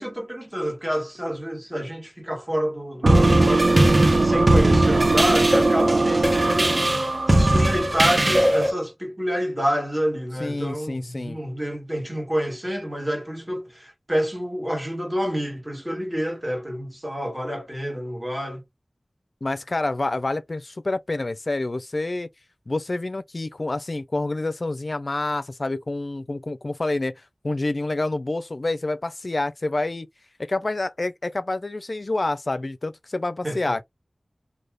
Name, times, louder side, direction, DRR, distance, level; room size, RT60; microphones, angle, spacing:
voice 1, 0.0-3.7 4.1-6.8 7.3-18.6 33.4-33.8, equal, 20° right, 1.2 m, -28 dB
sound 1, 3.0-8.7, right 2 dB, 85° right, 0.5 m, -22 dB
sound 2, 3.1-8.7, right 1 dB, 40° right, 0.8 m, -20 dB
voice 2, 10.4-11.4 19.4-22.3 22.7-27.1 27.4-30.1 30.4-33.8, left 2 dB, 55° left, 0.4 m, -27 dB
2.4 x 2.2 x 3.3 m
wide cardioid pair, 60°, 0 cm